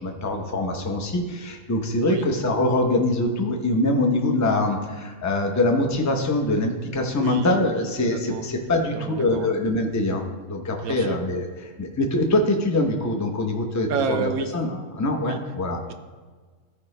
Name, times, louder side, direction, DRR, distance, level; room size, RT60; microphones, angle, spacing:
voice 1, 0.0-15.8, left 2 dB, 20° left, 2 dB, 0.4 m, -24 dB
voice 2, 7.1-8.5 8.9-9.6 10.8-11.2 13.9-14.5 15.2-15.4, right 6 dB, 70° right, 9 dB, 1.0 m, -30 dB
14.0 x 4.9 x 3.2 m, 1.4 s
omnidirectional pair, 1.7 m